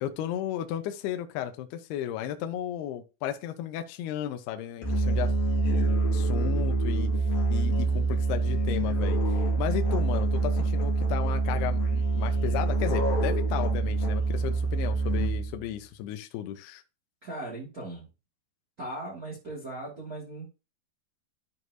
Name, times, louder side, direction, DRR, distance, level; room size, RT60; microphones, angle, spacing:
voice 1, 0.0-5.3 6.1-7.1 7.5-16.8, left 11 dB, 80° left, 7 dB, 2.4 m, -34 dB
Musical instrument, 4.8-15.6, right 3 dB, 50° left, 2.6 m, -26 dB
voice 2, 17.2-18.1 18.8-20.5, right 1 dB, 75° right, -4 dB, 0.8 m, -38 dB
13.0 x 4.7 x 2.7 m, 0.30 s
omnidirectional pair, 5.6 m